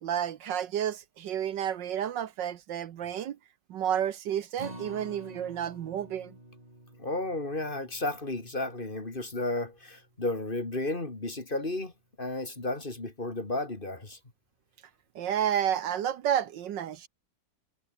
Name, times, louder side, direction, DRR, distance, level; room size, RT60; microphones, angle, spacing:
voice 1, 0.0-3.4 3.7-6.3 15.1-17.1, right 10 dB, 70° right, 1.6 m, -31 dB
Acoustic guitar, 4.6-10.9 11.3-11.4 11.8-11.9, right 1 dB, 20° right, 6.4 m, -49 dB
voice 2, 7.0-11.9 12.2-14.2, left 2 dB, 25° left, 2.8 m, -33 dB
omnidirectional pair, 2.1 m